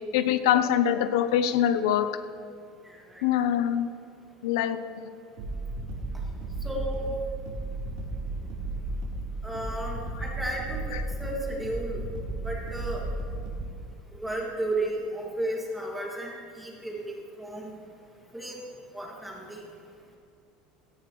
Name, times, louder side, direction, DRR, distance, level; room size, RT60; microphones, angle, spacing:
voice 1, 0.1-2.1 3.2-3.9 4.4-4.8 10.9-11.0, left 10 dB, 90° left, 11 dB, 0.7 m, -24 dB
sound 1, 5.4-13.7, right 2 dB, 65° right, 3.7 m, -34 dB
voice 2, 6.6-7.1 9.4-12.0 12.4-13.0 14.2-16.3 16.6-17.7 18.3-18.6 18.9-19.6, right 1 dB, 5° right, -3 dB, 2.2 m, -33 dB
17.0 x 15.0 x 3.2 m, 2.3 s
cardioid pair, 165°, 2 cm